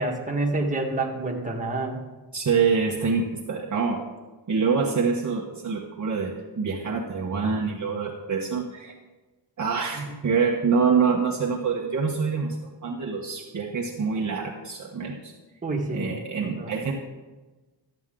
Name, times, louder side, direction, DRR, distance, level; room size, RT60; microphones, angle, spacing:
voice 1, 0.0-2.0 9.9-10.1 15.6-16.1 16.4-16.7, right 2 dB, 15° right, -1 dB, 1.5 m, -28 dB
voice 2, 2.3-4.0 4.5-8.9 9.6-15.3 15.9-16.9, right 5 dB, 40° right, -2 dB, 1.0 m, -26 dB
13.0 x 8.1 x 3.7 m, 1.2 s
wide cardioid pair, 125°, 46 cm